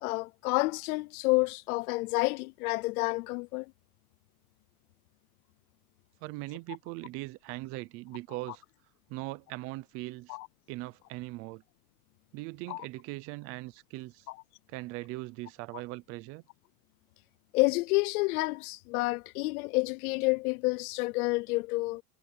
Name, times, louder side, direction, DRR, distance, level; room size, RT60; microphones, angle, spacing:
voice 1, 0.0-3.7 10.3-10.5 12.7-12.8 14.3-14.4 17.5-22.0, left 24 dB, 75° left, 0.7 m, -29 dB
voice 2, 6.2-8.6 9.1-10.4 10.7-11.6 12.3-14.3 14.7-16.4, right 20 dB, 30° right, 0.6 m, -40 dB
supercardioid pair, 180°, 44 cm